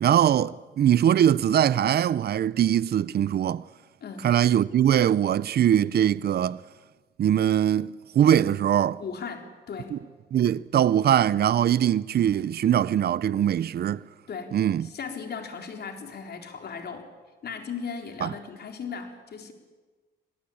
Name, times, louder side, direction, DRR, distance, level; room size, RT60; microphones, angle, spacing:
voice 1, 0.0-3.6 4.2-6.6 7.2-7.9 8.1-9.0 9.9-10.0 10.3-14.0 14.5-14.9 18.2-18.3, right 10 dB, 55° right, 0.6 m, -22 dB
voice 2, 9.0-10.0 14.3-17.1 17.4-19.5, left 6 dB, 55° left, 3.9 m, -37 dB
26.0 x 18.0 x 8.6 m
cardioid pair, 90°, 20 cm